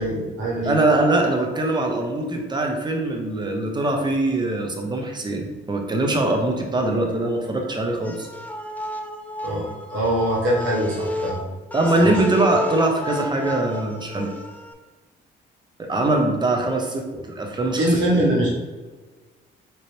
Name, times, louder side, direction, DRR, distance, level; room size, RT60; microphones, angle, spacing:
voice 1, 0.0-0.7 9.4-11.4 11.9-12.4 17.8-18.5, right 1 dB, 70° right, -4 dB, 1.3 m, -23 dB
voice 2, 0.6-8.3 11.7-14.3 15.8-17.1 17.4-18.0, right 2 dB, 20° right, 2 dB, 0.8 m, -22 dB
sound 1, 8.0-14.7, left 2 dB, 10° left, 0.5 m, -32 dB
4.0 x 3.0 x 3.2 m, 1.3 s
cardioid pair, 90°, 20 cm